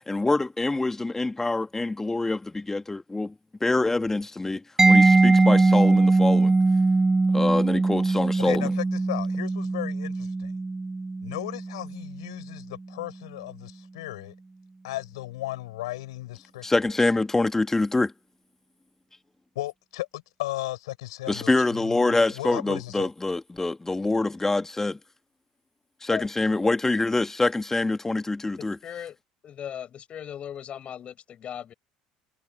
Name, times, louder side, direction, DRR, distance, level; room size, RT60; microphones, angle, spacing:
voice 1, 0.1-3.3 3.6-6.5 7.3-8.7 16.6-18.1 21.3-25.0 26.0-28.8, left 2 dB, 15° left, 2.3 m, -25 dB
Mallet percussion, 4.8-12.3, right 3 dB, 15° right, 0.6 m, -21 dB
voice 2, 8.4-10.6 11.2-14.3 14.8-16.7 19.6-23.1, left 17 dB, 75° left, 5.3 m, -35 dB
voice 3, 28.6-29.2 29.4-31.7, left 9 dB, 45° left, 6.9 m, -37 dB
figure-of-eight pair, 65°, 3 cm